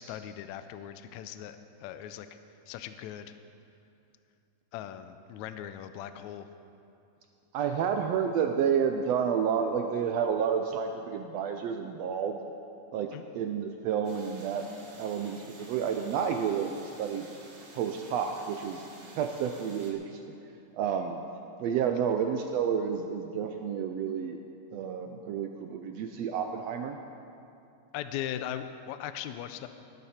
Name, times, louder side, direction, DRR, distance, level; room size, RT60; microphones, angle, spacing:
voice 1, 0.0-2.3 2.7-3.3 4.7-6.5 13.1-13.2 27.9-29.7, left 11 dB, 80° left, 10 dB, 1.8 m, -39 dB
voice 2, 7.5-12.4 12.9-14.6 15.0-17.3 17.7-18.8 19.2-20.4 20.7-21.2 21.6-24.4 24.7-27.0, right 7 dB, 80° right, 5 dB, 1.5 m, -30 dB
sound 1, 14.0-19.9, right 2 dB, 45° right, 1.8 m, -51 dB
18.5 x 10.5 x 4.3 m, 2.6 s
omnidirectional pair, 3.5 m